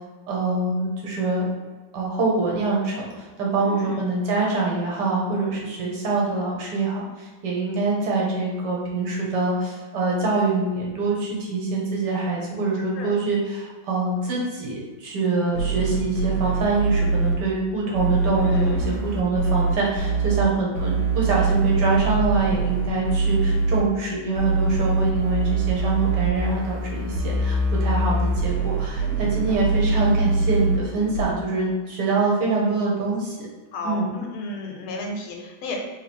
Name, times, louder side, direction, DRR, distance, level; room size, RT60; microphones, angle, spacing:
voice 1, 0.3-1.5 1.9-33.4 33.8-34.1, right 3 dB, 60° right, -3 dB, 1.4 m, -24 dB
voice 2, 3.6-4.0 13.0-13.2 18.4-19.1 29.0-29.5 30.9-31.1 33.7-35.8, left 2 dB, 85° left, 1 dB, 1.6 m, -34 dB
sound 1, 15.5-17.4 17.9-20.4 20.7-23.8 24.3-30.8 31.1-31.2, right 3 dB, 90° right, 1.6 m, -23 dB
3.5 x 2.9 x 4.2 m, 1.3 s
omnidirectional pair, 2.2 m